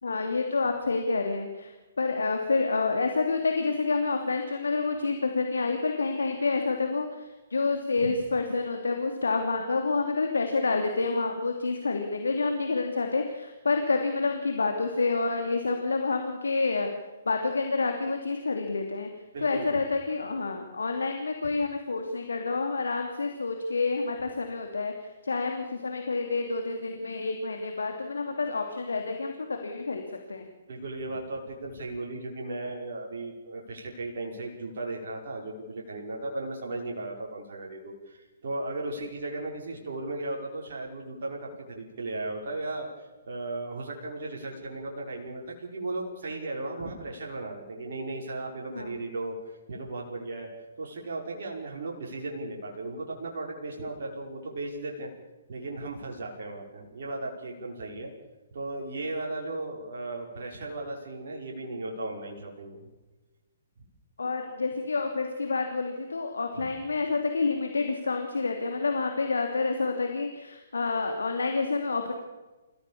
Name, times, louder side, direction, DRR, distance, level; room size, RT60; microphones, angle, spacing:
voice 1, 0.0-16.9 17.3-19.1 19.4-30.0 30.3-30.4 48.7-49.0 64.2-72.1, left 3 dB, 70° left, 4 dB, 2.8 m, -28 dB
voice 2, 19.3-19.7 30.7-50.5 50.8-55.1 55.5-58.1 58.5-62.9 66.6-66.7, right 2 dB, 55° right, -1 dB, 5.3 m, -36 dB
29.0 x 16.0 x 7.2 m, 1.2 s
figure-of-eight pair, 125°, 0 cm